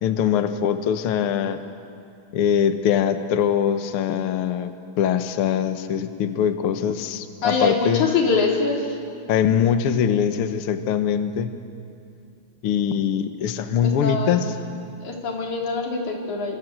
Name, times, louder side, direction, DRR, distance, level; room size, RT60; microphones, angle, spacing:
voice 1, 0.0-1.6 2.3-8.1 9.3-11.5 12.6-14.5, left 8 dB, 90° left, 9 dB, 1.2 m, -22 dB
voice 2, 7.4-9.0 13.8-14.4 15.0-16.6, left 4 dB, 55° left, 0 dB, 4.5 m, -23 dB
29.0 x 25.0 x 8.0 m, 2.4 s
omnidirectional pair, 4.3 m